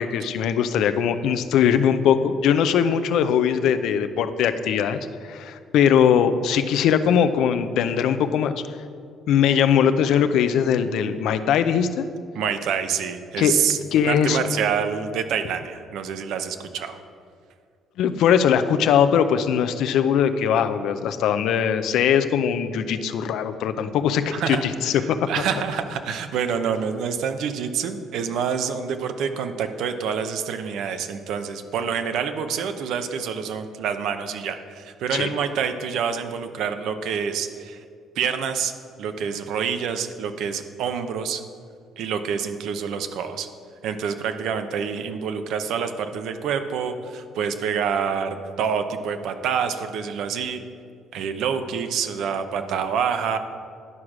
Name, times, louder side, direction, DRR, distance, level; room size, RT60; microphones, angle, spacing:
voice 1, 0.0-8.5 9.3-12.0 13.4-13.5 13.9-14.4 18.0-25.4 35.1-35.3, left 8 dB, 75° left, 10 dB, 0.5 m, -21 dB
voice 2, 12.3-17.0 24.3-37.8 38.2-38.7 39.0-41.4 42.0-43.5 43.8-50.6 51.1-53.4, right 7 dB, 75° right, 8 dB, 0.7 m, -27 dB
11.0 x 4.9 x 6.0 m, 2.3 s
cardioid pair, 85°, 0 cm